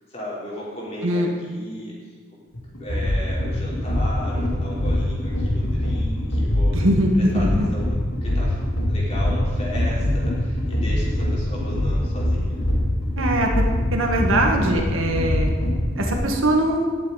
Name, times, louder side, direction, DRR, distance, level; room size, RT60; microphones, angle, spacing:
voice 1, 0.1-2.1 2.8-6.8 7.3-8.0 8.2-12.6, left 1 dB, 30° left, -6 dB, 3.6 m, -35 dB
sound 1, 2.5-16.2, left 1 dB, 85° left, 2.3 m, -23 dB
voice 2, 6.7-7.6 13.2-13.6 13.9-15.5 16.0-16.8, right 1 dB, 80° right, 2 dB, 1.5 m, -21 dB
18.5 x 7.4 x 4.0 m, 1.5 s
head